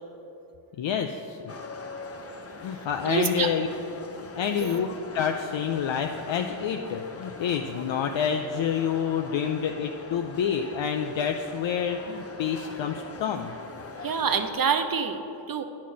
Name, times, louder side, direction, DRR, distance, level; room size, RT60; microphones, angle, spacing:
voice 1, 0.8-1.4 2.6-3.7 4.3-4.9 5.1-13.5, left 8 dB, 75° left, 4 dB, 0.5 m, -28 dB
sound 1, 1.5-14.5, left 3 dB, 30° left, 0.7 m, -42 dB
voice 2, 3.0-3.5 4.5-4.9 14.0-15.6, right 6 dB, 50° right, 8 dB, 0.7 m, -27 dB
9.4 x 4.3 x 6.2 m, 3.0 s
cardioid pair, 50°, 46 cm